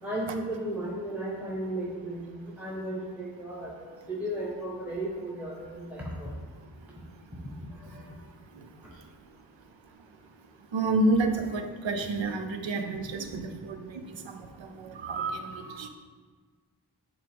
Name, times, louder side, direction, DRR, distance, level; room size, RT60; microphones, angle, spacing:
voice 1, 0.0-6.3 7.7-8.2, right 1 dB, 5° right, -4 dB, 1.1 m, -35 dB
voice 2, 10.7-13.8 14.0-15.9, right 2 dB, 90° right, 6 dB, 0.6 m, -29 dB
7.7 x 3.7 x 3.4 m, 1.5 s
cardioid pair, 50°, 44 cm